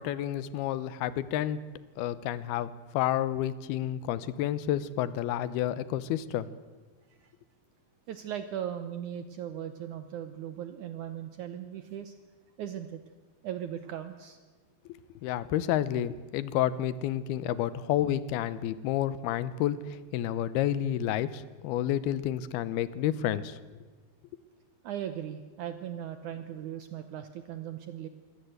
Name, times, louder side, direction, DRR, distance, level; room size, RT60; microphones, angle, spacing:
voice 1, 0.0-1.6 2.0-6.5 15.2-23.6, left 11 dB, 80° left, 17 dB, 2.8 m, -30 dB
voice 2, 8.1-12.1 12.6-13.0 13.4-14.4 24.8-28.1, right 10 dB, 75° right, 10 dB, 1.9 m, -38 dB
24.5 x 17.0 x 8.0 m, 1.3 s
omnidirectional pair, 4.5 m